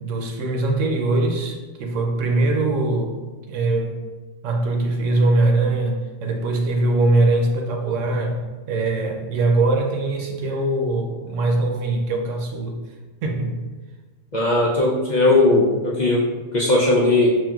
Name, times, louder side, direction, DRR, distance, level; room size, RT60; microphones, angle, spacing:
voice 1, 0.0-3.2 3.5-3.9 4.4-12.8 13.2-13.5 16.9-17.0, right 2 dB, 85° right, 2 dB, 1.0 m, -22 dB
voice 2, 14.3-16.2 16.5-17.3, left 2 dB, 55° left, -4 dB, 0.5 m, -18 dB
5.3 x 2.7 x 2.3 m, 1.3 s
omnidirectional pair, 1.3 m